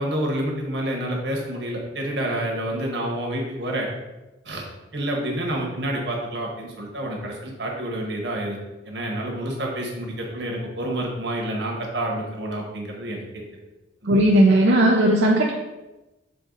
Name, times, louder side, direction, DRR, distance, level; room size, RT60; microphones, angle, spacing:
voice 1, 0.0-3.9 4.4-4.6 4.9-8.6 8.9-13.2, right 1 dB, 75° right, 0 dB, 1.4 m, -28 dB
voice 2, 14.1-15.5, right 1 dB, 90° right, -2 dB, 0.7 m, -16 dB
6.9 x 3.7 x 4.0 m, 1.1 s
head